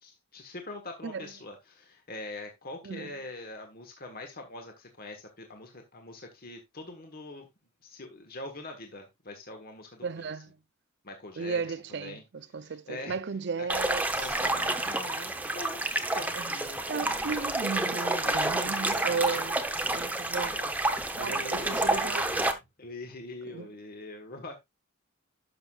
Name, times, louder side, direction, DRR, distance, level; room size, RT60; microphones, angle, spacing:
voice 1, 0.0-7.5 7.8-10.4 11.0-12.2 12.6-13.2 13.6-13.8 14.1-17.5 18.2-19.4 20.4-20.7 21.1-22.5 22.8-24.6, left 2 dB, 45° left, 1.5 m, -43 dB
voice 2, 10.0-10.6 11.4-14.0 14.3-14.7 16.3-16.6 16.9-19.6 19.9-20.5 21.2-22.6 23.5-23.7, right 5 dB, 55° right, 0.5 m, -35 dB
sound 1, 13.7-22.5, right 2 dB, 10° right, 0.8 m, -29 dB
11.5 x 6.4 x 2.4 m
head